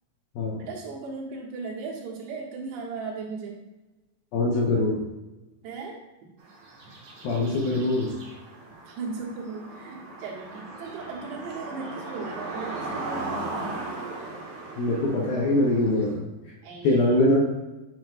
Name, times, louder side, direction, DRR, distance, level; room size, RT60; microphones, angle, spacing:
voice 1, 0.6-3.6 5.6-6.0 8.9-13.7 16.6-17.2, right 4 dB, 85° right, -3 dB, 3.6 m, -37 dB
voice 2, 4.3-5.1 7.2-8.2 14.8-16.3 16.8-17.4, left 2 dB, 70° left, -3 dB, 2.5 m, -23 dB
sound 1, 6.4-16.1, right 2 dB, 60° right, 2.1 m, -38 dB
7.8 x 7.7 x 2.3 m, 1.1 s
omnidirectional pair, 4.9 m